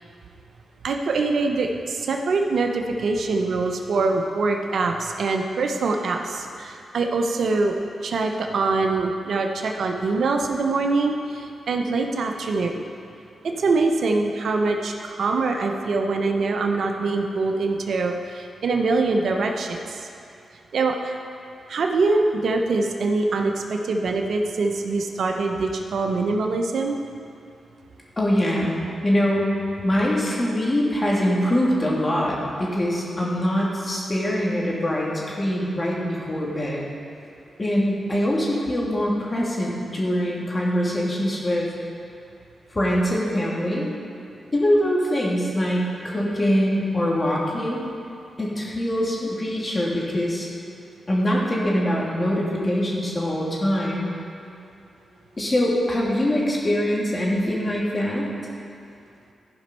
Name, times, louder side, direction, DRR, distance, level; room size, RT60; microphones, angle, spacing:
voice 1, 0.8-7.7 8.0-12.9 13.4-20.0 20.7-21.2 21.7-27.0, right 3 dB, 75° right, 3 dB, 0.8 m, -24 dB
voice 2, 28.2-28.7 29.0-29.5 29.8-36.8 37.6-41.7 42.7-43.9 44.5-47.8 48.4-50.5 51.1-54.1 55.4-58.3, equal, 35° left, -4 dB, 2.8 m, -23 dB
14.5 x 5.4 x 5.6 m, 2.5 s
cardioid pair, 50°, 0 cm